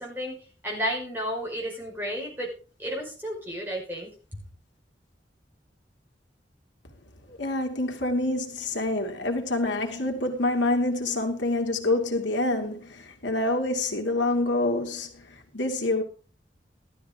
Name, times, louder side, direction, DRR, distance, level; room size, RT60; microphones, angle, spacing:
voice 1, 0.0-2.5 2.8-4.4, equal, 10° right, 4.8 m, -32 dB
voice 2, 7.3-16.0, left 2 dB, 85° left, 2.6 m, -27 dB
13.5 x 13.0 x 3.6 m
head